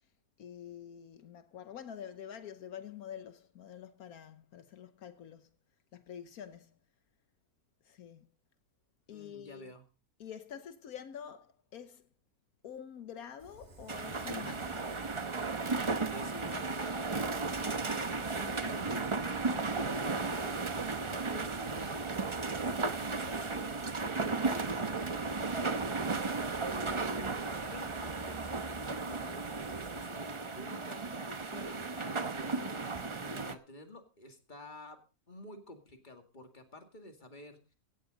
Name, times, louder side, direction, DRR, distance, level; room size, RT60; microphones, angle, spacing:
voice 1, 0.4-5.5 5.9-6.8 7.8-8.3 9.1-9.7 10.2-12.1 12.6-14.9, left 8 dB, 80° left, 1.4 m, -47 dB
voice 2, 9.1-9.8 15.7-20.5 20.8-22.0 22.5-25.5 26.6-31.0 31.3-35.0 35.3-37.7, left 2 dB, 30° left, 2.3 m, -50 dB
Fire, 13.4-30.4, right 2 dB, 45° right, 2.1 m, -52 dB
sound 1, 13.9-33.5, right 3 dB, 25° right, 0.8 m, -35 dB
17.0 x 12.0 x 4.0 m
omnidirectional pair, 1.5 m